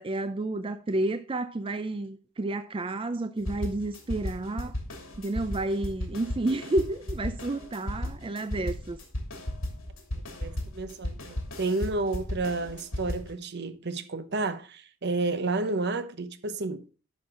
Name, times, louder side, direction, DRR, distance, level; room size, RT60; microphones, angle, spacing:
voice 1, 0.0-4.8 5.2-9.0, right 2 dB, 25° right, 0.4 m, -30 dB
sound 1, 3.5-13.3, left 1 dB, 85° left, 2.7 m, -35 dB
voice 2, 10.4-11.2 11.6-16.8, right 3 dB, 55° right, 0.9 m, -30 dB
10.5 x 6.3 x 3.7 m
head